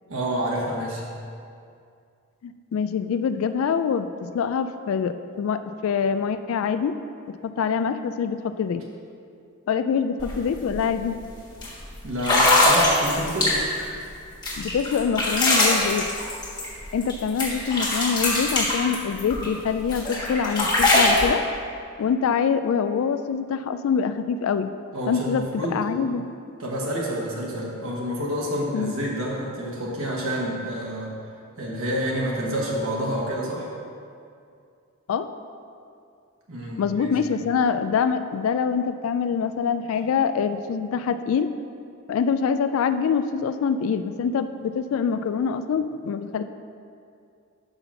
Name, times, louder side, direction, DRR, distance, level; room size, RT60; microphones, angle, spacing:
voice 1, 0.1-1.0 12.0-13.6 24.9-25.7 26.6-31.1 31.6-33.7 36.5-37.1, equal, 80° right, -4 dB, 1.3 m, -28 dB
voice 2, 2.4-7.0 7.3-8.8 9.7-11.2 14.6-16.1 16.9-21.5 22.0-24.7 25.1-26.3 28.7-28.9 35.1-35.3 36.8-41.5 42.1-46.4, left 6 dB, 75° left, 10 dB, 0.3 m, -25 dB
sound 1, 10.2-10.3 10.7-11.0 11.6-11.7 12.2-13.8 14.4-17.1 17.4-19.5 19.9-21.3, left 2 dB, 20° left, 1.4 m, -21 dB
5.8 x 5.5 x 5.6 m, 2.4 s
head